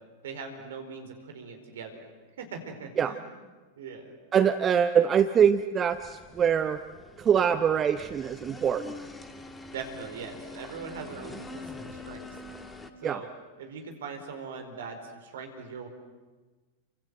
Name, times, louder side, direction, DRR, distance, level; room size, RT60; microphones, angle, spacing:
voice 1, 0.2-2.0 2.4-3.2 3.8-4.1 9.7-12.3 13.0-13.3 13.6-15.9, right 5 dB, 60° right, 5 dB, 4.7 m, -41 dB
voice 2, 4.3-6.8 7.2-8.9 13.0-13.2, right 8 dB, 25° right, 11 dB, 0.9 m, -24 dB
sound 1, 5.9-12.9, left 3 dB, 10° left, 2.2 m, -45 dB
29.0 x 25.5 x 7.9 m, 1.3 s
figure-of-eight pair, 90°, 0 cm